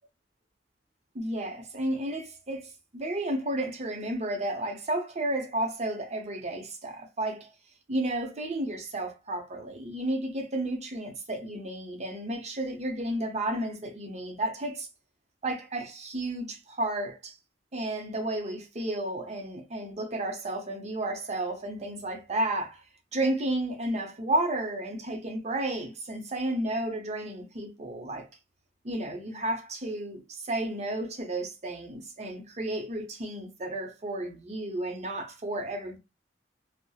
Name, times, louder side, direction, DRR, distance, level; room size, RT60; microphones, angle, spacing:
voice 1, 1.1-7.5 7.9-14.9 15.4-17.3 17.7-22.8 23.1-28.3 28.8-36.0, right 1 dB, 35° right, 0.6 m, -32 dB
2.7 x 2.0 x 2.2 m
head